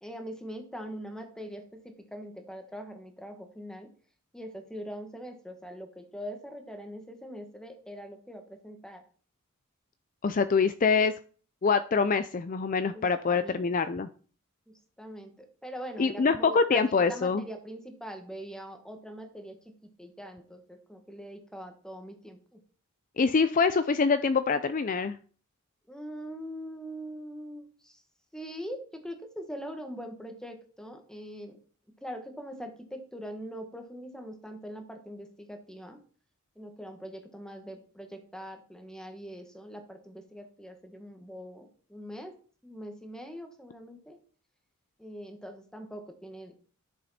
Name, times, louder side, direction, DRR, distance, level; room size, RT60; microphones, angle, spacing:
voice 1, 0.0-3.9 4.3-9.0 12.9-13.6 14.7-22.6 25.9-28.0 28.3-31.6 32.0-36.0 36.6-42.3 42.6-44.2 45.0-46.5, equal, 5° left, 5 dB, 1.4 m, -42 dB
voice 2, 10.2-11.1 11.6-14.1 16.0-17.4 23.2-25.2, left 5 dB, 40° left, 11 dB, 0.4 m, -25 dB
11.0 x 6.9 x 4.2 m, 0.43 s
head